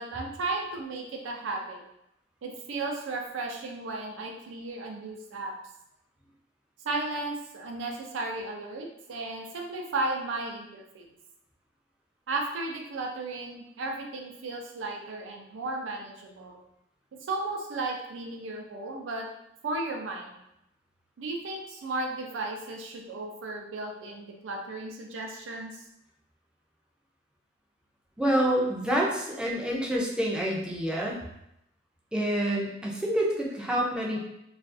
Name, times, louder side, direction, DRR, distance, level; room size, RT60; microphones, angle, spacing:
voice 1, 0.0-1.8 2.4-5.5 6.8-11.1 12.3-16.6 17.3-19.3 19.6-20.4 21.2-25.8, right 2 dB, 85° right, 1 dB, 0.5 m, -34 dB
voice 2, 28.2-31.2 32.1-34.2, right 1 dB, 5° right, -3 dB, 0.3 m, -27 dB
2.4 x 2.3 x 2.4 m, 0.82 s
head